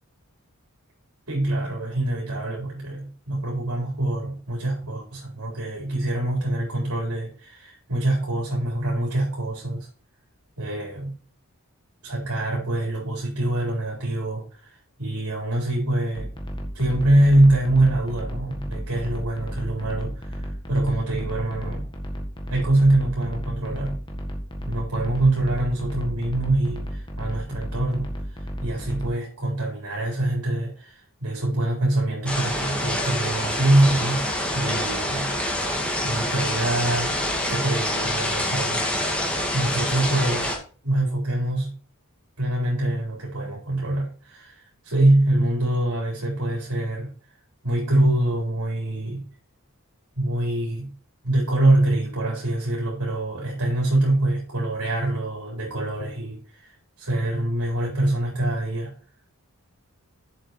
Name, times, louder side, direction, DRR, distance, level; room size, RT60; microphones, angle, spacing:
voice 1, 1.3-9.9 10.6-11.2 12.0-16.3 16.7-21.9 22.5-24.0 24.7-28.1 28.4-35.4 36.0-37.2 37.5-38.8 39.5-40.5 40.8-41.7 42.4-47.1 47.6-49.3 50.1-50.9 51.2-58.9, right 1 dB, 75° right, -2 dB, 4.0 m, -24 dB
sound 1, 16.1-29.1, equal, 20° left, 1.6 m, -33 dB
sound 2, 32.3-40.6, left 1 dB, 5° left, 2.1 m, -26 dB
7.5 x 7.1 x 4.4 m, 0.39 s
head